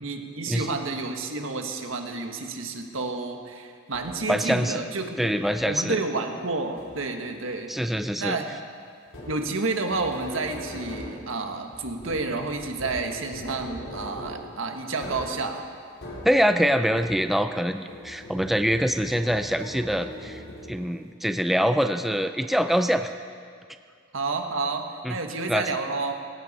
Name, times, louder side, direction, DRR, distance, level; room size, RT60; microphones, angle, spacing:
voice 1, 0.0-5.3 5.6-7.7 8.2-8.5 9.3-15.6 24.1-26.1, right 3 dB, 85° right, 4 dB, 1.5 m, -30 dB
sound 1, 3.9-4.4 5.4-5.9 6.8-7.3 9.1-17.6 17.9-21.0, equal, 90° left, 4.4 m, -41 dB
voice 2, 4.3-4.8 5.2-6.0 7.7-8.4 16.2-23.1 25.0-25.2 25.5-25.7, equal, ahead, 8 dB, 0.4 m, -24 dB
19.0 x 17.0 x 4.2 m, 2.2 s
head